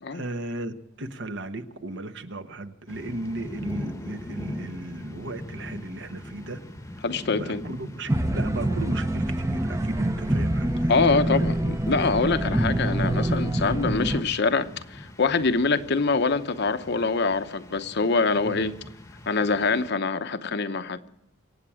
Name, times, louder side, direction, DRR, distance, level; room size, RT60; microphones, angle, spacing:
voice 1, 0.1-6.6 6.9-7.0 7.3-11.0 18.4-18.7, right 2 dB, 60° right, 1.1 m, -35 dB
sound 1, 2.9-19.9, left 1 dB, 15° left, 1.0 m, -41 dB
voice 2, 7.0-7.6 10.9-18.7 19.3-21.0, left 4 dB, 55° left, 0.9 m, -24 dB
sound 2, 8.1-14.2, right 1 dB, 15° right, 0.7 m, -25 dB
25.5 x 8.8 x 6.3 m
head